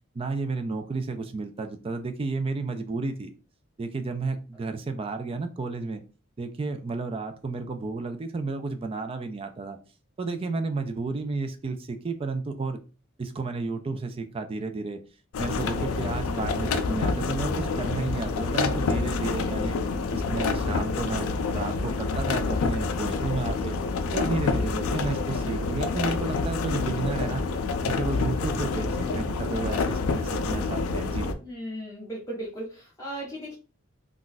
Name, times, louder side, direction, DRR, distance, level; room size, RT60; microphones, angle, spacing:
voice 1, 0.1-3.3 3.8-6.0 6.4-9.8 10.2-12.8 13.2-15.0 15.4-19.7 20.1-23.7 24.1-27.4 27.9-31.3, right 3 dB, 25° right, 8 dB, 0.3 m, -32 dB
sound 1, 15.3-31.3, left 4 dB, 75° left, 0.4 m, -27 dB
voice 2, 31.4-33.6, right 1 dB, 15° left, -6 dB, 0.6 m, -36 dB
2.4 x 2.2 x 3.9 m, 0.36 s
head